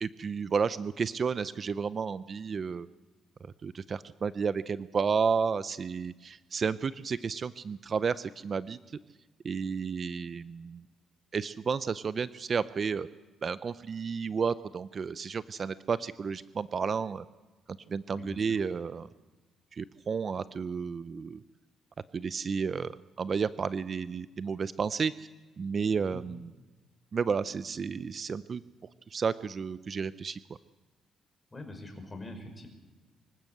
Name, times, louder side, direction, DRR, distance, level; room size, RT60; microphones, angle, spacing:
voice 1, 0.0-2.9 3.6-9.0 9.4-10.9 11.3-13.1 13.4-17.2 17.9-19.1 19.7-21.4 22.1-25.3 25.6-26.5 27.1-28.6 29.1-30.4, right 5 dB, 45° right, 15 dB, 0.6 m, -32 dB
voice 2, 18.1-18.5 26.1-26.2 31.5-32.7, left 2 dB, 20° left, 5 dB, 5.3 m, -43 dB
25.0 x 14.0 x 7.9 m, 1.3 s
cardioid pair, 90°, 0 cm